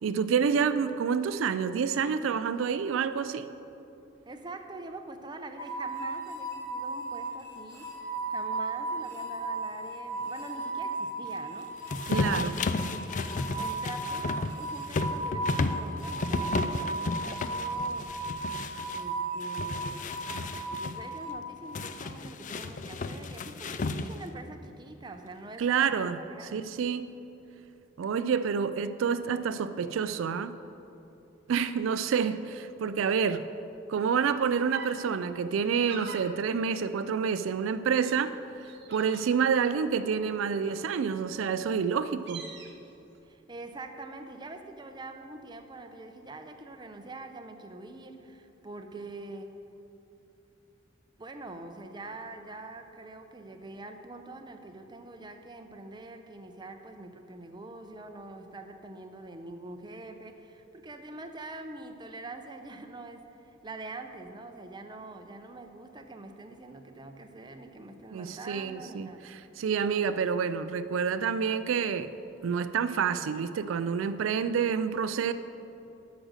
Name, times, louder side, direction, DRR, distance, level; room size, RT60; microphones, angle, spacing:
voice 1, 0.0-3.5 12.1-12.6 25.6-27.2 28.0-30.6 31.5-33.5 33.9-38.4 38.9-42.5 68.1-72.1 72.4-75.3, right 6 dB, 85° right, 11 dB, 0.4 m, -28 dB
voice 2, 4.3-7.9 8.3-12.0 12.3-13.2 13.5-18.4 18.9-20.1 20.8-26.6 43.2-49.6 51.2-69.2, right 2 dB, 25° right, 5 dB, 0.6 m, -44 dB
sound 1, 5.6-21.3, right 3 dB, 15° left, 1.7 m, -35 dB
sound 2, 11.9-19.0 19.4-21.0 21.8-24.3, left 3 dB, 40° left, 0.4 m, -33 dB
sound 3, 34.7-34.9 35.6-36.3 36.8-37.6 38.0-38.2 38.6-39.4 39.8-41.0 41.6-41.7 42.0-42.7, right 5 dB, 60° right, 1.0 m, -45 dB
12.5 x 5.1 x 6.4 m, 2.9 s
head